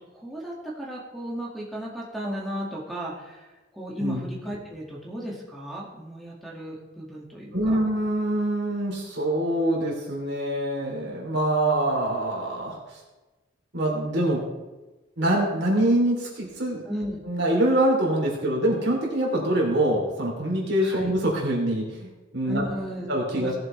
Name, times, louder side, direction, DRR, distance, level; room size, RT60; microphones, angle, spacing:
voice 1, 0.1-7.8 16.9-17.2 20.8-21.1 22.4-23.1 23.3-23.5, equal, ahead, -4 dB, 2.0 m, -35 dB
voice 2, 7.5-13.0 13.7-14.4 15.2-16.8 17.2-22.6 23.1-23.6, right 1 dB, 60° right, -2 dB, 3.3 m, -24 dB
17.5 x 7.7 x 3.3 m, 1.1 s
head